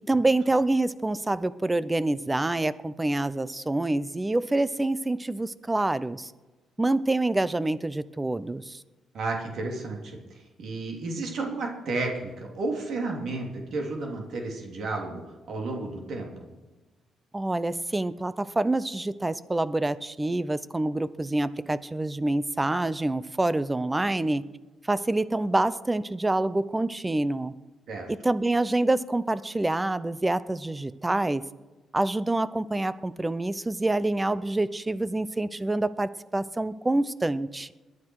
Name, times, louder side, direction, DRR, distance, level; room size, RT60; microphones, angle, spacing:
voice 1, 0.1-6.3 6.8-8.8 17.3-24.4 24.8-27.5 28.2-31.4 31.9-37.7, right 2 dB, 15° right, 16 dB, 0.6 m, -26 dB
voice 2, 9.1-15.2 15.5-16.5 27.9-28.1, right 3 dB, 65° right, 1 dB, 3.1 m, -32 dB
21.5 x 9.7 x 4.7 m, 1.2 s
cardioid pair, 90°, 0 cm